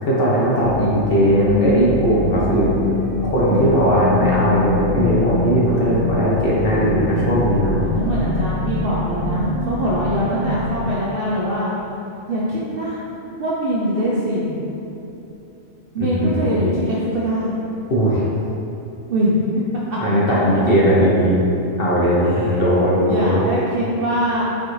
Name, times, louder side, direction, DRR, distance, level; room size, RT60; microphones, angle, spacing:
voice 1, 0.0-2.7 3.2-7.8 16.0-16.5 17.9-18.2 20.0-21.4 21.8-23.5, equal, 50° left, -6 dB, 0.8 m, -18 dB
sound 1, 0.6-10.8, left 1 dB, 25° left, 0.3 m, -24 dB
voice 2, 7.7-11.7 12.3-13.0 13.4-14.6 15.9-17.6 19.1-19.3 22.2-22.8 23.1-24.4, equal, 60° right, -7 dB, 0.6 m, -23 dB
5.3 x 2.5 x 3.1 m, 2.9 s
omnidirectional pair, 1.4 m